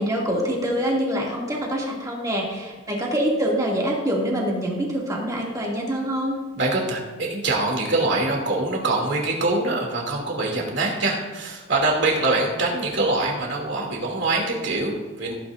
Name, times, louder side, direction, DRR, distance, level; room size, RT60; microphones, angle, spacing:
voice 1, 0.0-6.4, equal, 20° right, -3 dB, 2.6 m, -25 dB
voice 2, 6.5-15.3, right 2 dB, 65° right, -1 dB, 2.8 m, -24 dB
16.5 x 9.5 x 2.7 m, 1.3 s
head